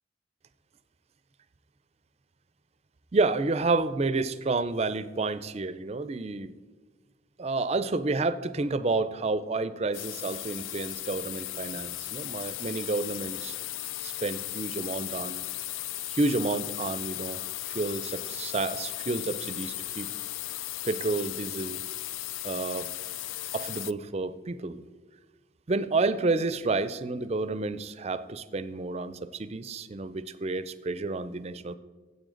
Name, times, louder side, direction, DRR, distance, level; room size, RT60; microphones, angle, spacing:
voice 1, 3.1-6.5 7.4-13.6 14.0-15.4 16.1-20.1 20.8-21.8 22.4-22.9 23.5-24.8 25.7-31.8, right 3 dB, 35° right, 15 dB, 0.4 m, -30 dB
sound 1, 9.9-23.9, left 15 dB, 85° left, 0.3 m, -36 dB
14.0 x 8.1 x 3.8 m, 1.4 s
head